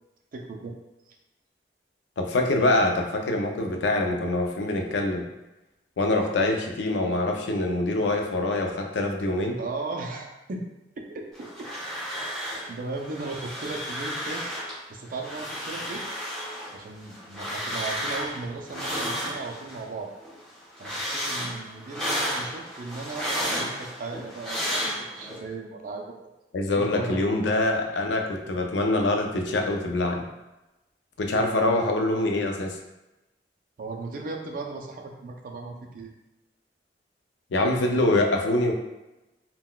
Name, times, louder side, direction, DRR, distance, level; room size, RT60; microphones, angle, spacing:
voice 1, 0.3-0.7 1.1-1.2 9.6-10.7 11.0-11.7 12.4-14.5 14.9-16.0 16.7-20.1 20.8-26.2 26.7-27.5 33.8-36.1, right 3 dB, 50° right, 2 dB, 0.4 m, -36 dB
voice 2, 2.2-5.3 6.0-9.6 26.5-30.2 31.2-32.8 37.5-38.7, left 2 dB, 75° left, 2 dB, 0.4 m, -24 dB
sound 1, 11.3-12.7 13.0-14.8 15.1-19.8 20.2-25.4, equal, 5° left, 0.8 m, -32 dB
3.7 x 2.2 x 2.2 m, 1.0 s
head